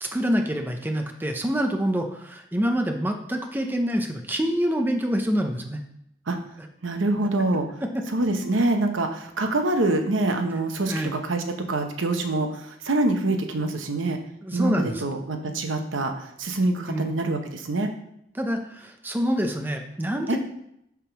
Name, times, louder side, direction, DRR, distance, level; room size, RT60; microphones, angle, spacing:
voice 1, 0.0-5.8 10.9-11.1 14.4-15.0 16.9-17.1 18.3-20.4, equal, 10° right, 4 dB, 0.5 m, -26 dB
voice 2, 6.8-7.7 8.1-14.2 14.5-17.9 20.3-20.4, right 2 dB, 85° right, 5 dB, 0.9 m, -25 dB
7.1 x 3.6 x 5.8 m, 0.76 s
head